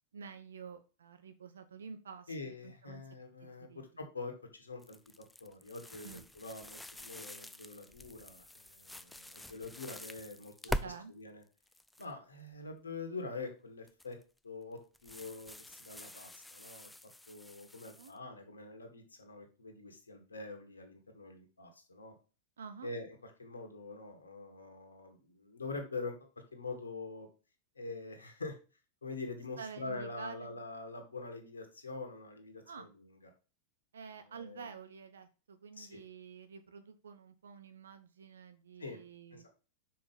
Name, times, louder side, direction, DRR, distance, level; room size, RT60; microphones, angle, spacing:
voice 1, 0.1-3.0 3.4-3.8 6.0-6.2 10.7-11.1 18.0-18.1 22.6-22.9 29.6-30.6 32.6-32.9 33.9-39.5, right 6 dB, 65° right, 10 dB, 0.6 m, -49 dB
voice 2, 2.3-5.0 5.4-10.5 10.8-11.4 12.0-14.2 14.4-16.9 17.3-22.1 22.8-26.1 26.5-27.3 27.8-28.6 29.0-33.0 34.3-34.7 35.8-36.0 38.8-39.0 39.3-39.5, left 3 dB, 75° left, 4 dB, 1.7 m, -45 dB
sound 1, 4.8-10.9 11.4-12.1 13.9-14.2 14.9-18.1, left 1 dB, 5° left, 0.4 m, -45 dB
6.0 x 5.0 x 5.4 m, 0.34 s
figure-of-eight pair, 90°, 0 cm